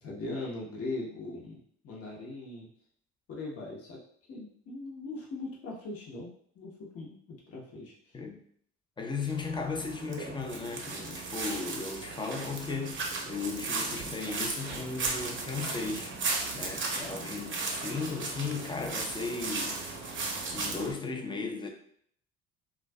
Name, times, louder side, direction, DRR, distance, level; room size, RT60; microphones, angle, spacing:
voice 1, 0.0-2.7 3.3-4.0 4.3-6.3 6.5-8.1 16.9-17.2, left 2 dB, 50° left, 0.8 m, -40 dB
voice 2, 9.0-16.2 16.5-19.9 20.5-21.7, left 4 dB, 15° left, 0.5 m, -36 dB
sound 1, 9.3-20.9, right 3 dB, 40° right, 0.6 m, -36 dB
2.4 x 2.3 x 2.2 m
supercardioid pair, 65°, 30 cm